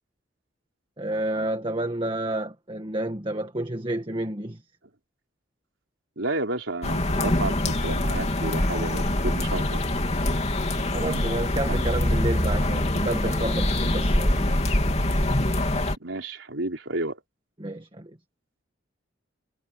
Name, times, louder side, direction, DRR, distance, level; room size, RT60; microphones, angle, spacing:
voice 1, 1.0-4.6 10.9-14.6 17.6-18.1, right 1 dB, 25° right, 1.7 m, -30 dB
voice 2, 6.2-9.8 11.7-11.8 16.0-17.2, right 2 dB, 85° right, 3.9 m, -31 dB
sound 1, 6.8-16.0, left 1 dB, 35° left, 3.0 m, -24 dB
head